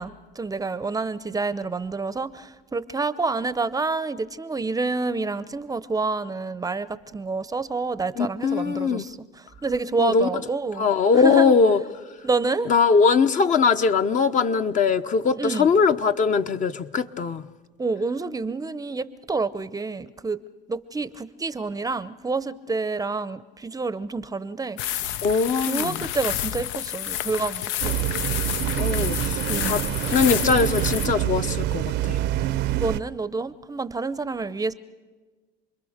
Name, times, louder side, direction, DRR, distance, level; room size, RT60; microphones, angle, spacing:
voice 1, 0.0-10.9 11.1-11.6 12.2-12.7 15.4-15.7 17.8-20.4 20.7-24.8 25.6-28.1 29.5-29.8 32.3-32.4 32.8-34.7, right 3 dB, 15° right, 15 dB, 0.7 m, -28 dB
voice 2, 8.2-9.0 10.0-10.3 10.8-11.8 12.7-17.4 25.2-26.0 28.8-29.8 30.1-32.2, left 5 dB, 35° left, 8 dB, 1.0 m, -21 dB
sound 1, 24.8-31.1, left 12 dB, 65° left, 0.7 m, -29 dB
sound 2, 27.8-33.0, right 14 dB, 55° right, 0.7 m, -26 dB
28.5 x 21.5 x 6.6 m, 1.3 s
supercardioid pair, 95°, 21 cm